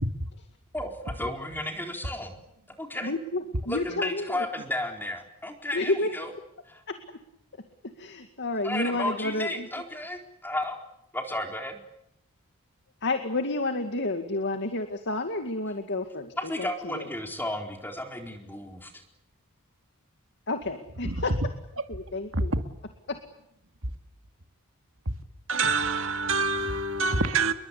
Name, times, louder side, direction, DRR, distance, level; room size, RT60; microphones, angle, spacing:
voice 1, 0.7-2.3 2.8-3.1 3.7-6.3 6.7-6.8 8.6-10.8 11.1-11.8 16.4-19.0, left 1 dB, 10° left, 4.2 m, -33 dB
voice 2, 3.0-4.5 5.7-6.4 6.9-7.0 8.0-9.7 13.0-17.1 20.5-21.3 21.9-22.5 23.1-23.2, left 2 dB, 50° left, 2.2 m, -30 dB
voice 3, 25.5-27.5, right 4 dB, 65° right, 2.4 m, -26 dB
29.0 x 23.0 x 8.4 m
head